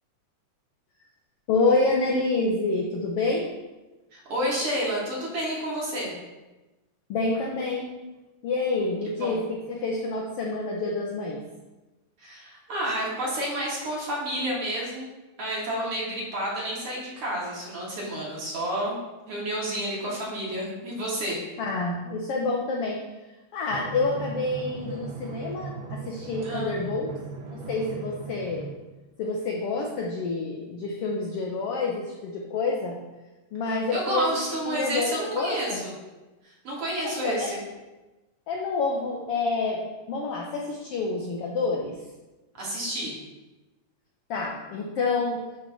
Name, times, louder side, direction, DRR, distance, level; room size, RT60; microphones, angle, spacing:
voice 1, 1.5-3.5 7.1-7.9 8.4-11.4 21.6-23.0 23.5-27.1 27.5-28.7 29.2-33.0 33.5-34.2 34.7-35.8 37.0-37.5 38.5-42.0 44.3-45.4, left 3 dB, 90° left, -1 dB, 1.3 m, -28 dB
voice 2, 4.1-6.1 9.2-9.4 12.2-15.1 15.4-19.0 19.3-21.4 26.4-26.8 33.6-35.9 36.4-37.6 42.6-43.1, right 1 dB, 50° right, -5 dB, 2.2 m, -30 dB
Drum, 23.7-28.7, right 3 dB, 80° right, 2.4 m, -38 dB
8.4 x 3.2 x 5.8 m, 1.1 s
omnidirectional pair, 3.6 m